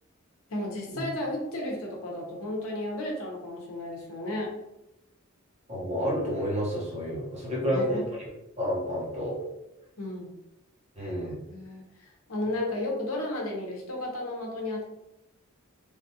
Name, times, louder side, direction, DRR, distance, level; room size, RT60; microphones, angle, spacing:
voice 1, 0.5-4.5 7.6-8.0 10.0-10.3 11.0-14.9, left 1 dB, 80° left, -1 dB, 0.8 m, -34 dB
voice 2, 5.7-8.2 8.6-9.4 11.0-11.4, equal, 35° right, -5 dB, 1.0 m, -30 dB
3.3 x 2.3 x 2.7 m, 0.90 s
head